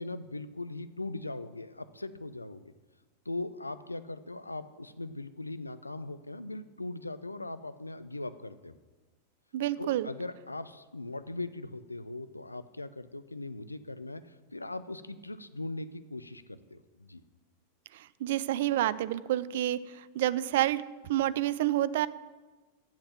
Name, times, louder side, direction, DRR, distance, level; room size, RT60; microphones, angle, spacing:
voice 1, 0.0-2.6 3.3-8.7 9.8-17.2, left 2 dB, 85° left, 12 dB, 0.4 m, -40 dB
voice 2, 9.5-10.1 17.9-22.1, right 13 dB, 55° right, 17 dB, 0.3 m, -29 dB
7.4 x 7.1 x 7.5 m, 1.2 s
figure-of-eight pair, 90°, 0 cm